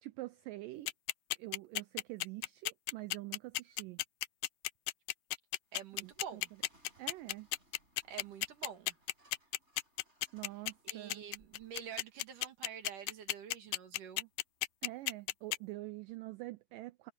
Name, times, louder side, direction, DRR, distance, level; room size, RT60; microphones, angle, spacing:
voice 1, 0.0-0.9 1.4-4.0 6.0-6.4 7.0-7.5 10.3-11.2 14.8-17.1, right 19 dB, 80° right, 2.0 m, -46 dB
sound 1, 0.9-15.6, left 18 dB, 80° left, 2.1 m, -34 dB
sound 2, 5.6-16.1, right 1 dB, 15° right, 7.3 m, -71 dB
voice 2, 5.7-6.5 8.1-9.0 10.8-14.3, right 8 dB, 60° right, 3.4 m, -47 dB
omnidirectional pair, 4.3 m